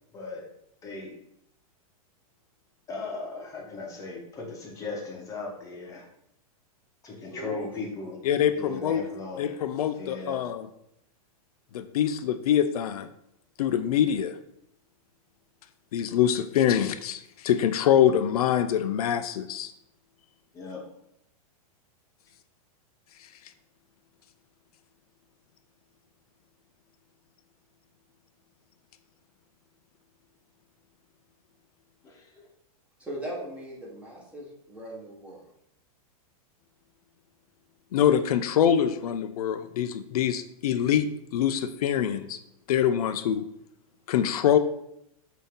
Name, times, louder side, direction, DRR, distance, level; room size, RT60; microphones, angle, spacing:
voice 1, 0.1-0.4 0.8-1.1 2.9-6.0 7.0-8.2 8.5-9.5 10.0-10.4 20.5-20.8 32.0-32.4, left 3 dB, 15° left, -1 dB, 0.9 m, -37 dB
voice 2, 7.1-7.7 33.0-35.4, right 1 dB, 5° right, -4 dB, 1.1 m, -39 dB
voice 3, 8.2-9.0 9.4-10.7 11.7-13.1 13.6-14.4 15.9-19.7 37.9-42.4 42.7-43.5 44.1-44.6, left 9 dB, 85° left, 10 dB, 0.4 m, -24 dB
5.4 x 2.8 x 3.6 m, 0.77 s
supercardioid pair, 150°, 19 cm